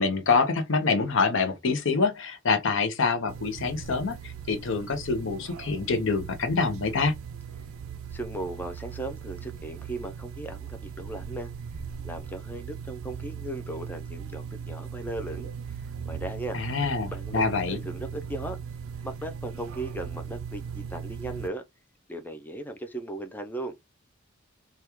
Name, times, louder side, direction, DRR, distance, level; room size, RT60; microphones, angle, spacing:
voice 1, 0.0-7.1 16.5-17.8, left 4 dB, 65° left, 0.6 m, -26 dB
sound 1, 3.3-21.5, right 7 dB, 85° right, 0.4 m, -39 dB
voice 2, 8.1-11.5 12.0-15.8 16.1-16.6 17.1-18.6 19.0-21.6 22.1-23.8, right 1 dB, 10° left, 0.3 m, -37 dB
3.4 x 2.2 x 2.9 m
head